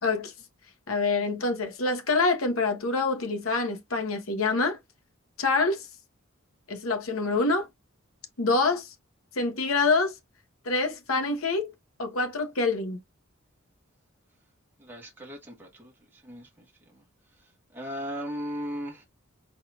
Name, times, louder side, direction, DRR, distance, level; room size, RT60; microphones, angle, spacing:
voice 1, 0.0-0.3 0.9-4.8 5.4-5.9 6.7-7.7 8.4-8.9 9.3-10.1 10.6-11.7 12.0-13.0, left 3 dB, 90° left, 1.1 m, -26 dB
voice 2, 14.8-16.6 16.9-17.0 17.7-19.0, equal, 10° right, 1.5 m, -37 dB
4.8 x 4.0 x 2.4 m
head